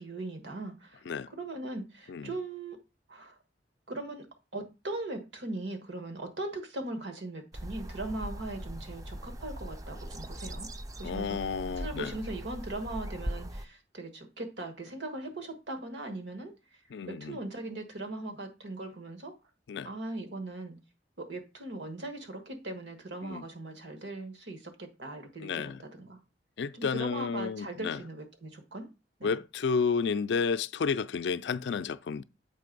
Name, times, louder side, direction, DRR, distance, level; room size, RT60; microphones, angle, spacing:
voice 1, 0.0-1.0 1.4-2.8 3.1-3.4 3.9-4.3 4.5-10.7 11.0-11.5 11.8-16.5 17.1-19.3 19.8-20.8 21.2-26.2 26.7-28.9 29.2-29.4, right 2 dB, 75° right, 1.4 m, -39 dB
sound 1, 7.5-13.7, equal, 20° right, 0.4 m, -40 dB
voice 2, 11.0-12.1 16.9-17.4 19.7-19.9 23.2-23.4 25.4-25.8 26.6-28.0 29.2-32.2, left 5 dB, 70° left, 0.4 m, -31 dB
7.6 x 3.3 x 5.2 m
head